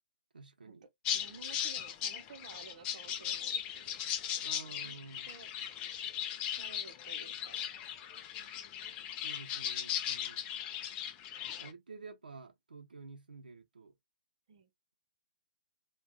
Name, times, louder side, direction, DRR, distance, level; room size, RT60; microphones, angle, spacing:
voice 1, 0.3-0.8 4.4-5.3 9.2-10.4 11.6-13.9, right 4 dB, 80° right, 0.6 m, -50 dB
sound 1, 1.0-11.7, left 10 dB, 25° left, 0.4 m, -38 dB
voice 2, 1.1-4.0 4.7-5.0 5.2-5.5 6.5-7.9 14.5-14.7, right 5 dB, 50° right, 0.8 m, -54 dB
2.4 x 2.3 x 3.5 m
figure-of-eight pair, 135°, 5 cm